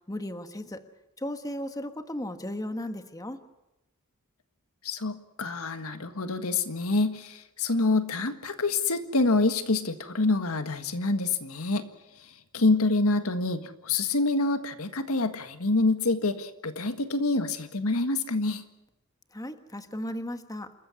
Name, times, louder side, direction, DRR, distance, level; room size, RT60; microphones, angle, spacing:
voice 1, 0.1-0.8 1.2-3.4 19.3-20.7, left 1 dB, 15° left, 8 dB, 1.3 m, -35 dB
voice 2, 4.8-11.9 12.2-18.6, left 3 dB, 90° left, 9 dB, 1.7 m, -27 dB
27.5 x 14.5 x 9.7 m, 0.94 s
head